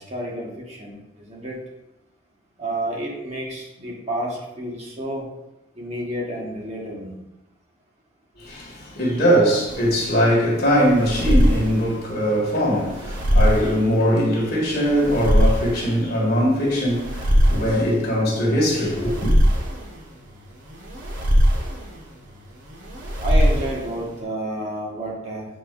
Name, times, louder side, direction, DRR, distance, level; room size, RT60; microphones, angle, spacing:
voice 1, 0.0-1.6 2.6-5.2 5.8-7.1 23.2-25.4, right 1 dB, 30° right, 1.4 m, -30 dB
voice 2, 8.4-19.3, equal, 50° left, 2.0 m, -21 dB
sound 1, 9.7-24.2, equal, 70° right, 1.5 m, -22 dB
8.7 x 4.6 x 2.6 m
head